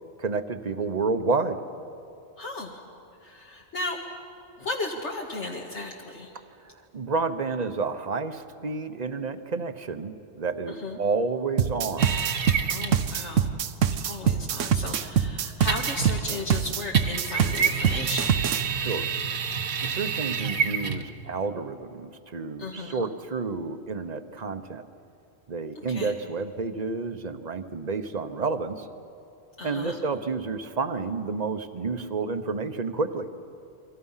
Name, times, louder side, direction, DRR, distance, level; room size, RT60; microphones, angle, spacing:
voice 1, 0.2-1.6 6.3-6.4 6.9-12.1 18.7-19.1 19.8-24.8 25.5-28.9 29.6-33.3, right 4 dB, 35° right, 10 dB, 1.0 m, -30 dB
voice 2, 2.4-2.8 3.2-4.0 4.6-6.4 10.7-11.0 12.6-13.5 14.0-18.4 22.6-23.1 25.8-26.2 29.6-30.0, left 2 dB, 70° left, -1 dB, 2.0 m, -35 dB
sound 1, 11.6-18.6, right 8 dB, 90° right, 1.1 m, -24 dB
sound 2, 12.0-13.1 15.7-16.4 16.9-21.1, right 6 dB, 60° right, 1.3 m, -28 dB
29.5 x 23.0 x 5.7 m, 2.7 s
omnidirectional pair, 1.2 m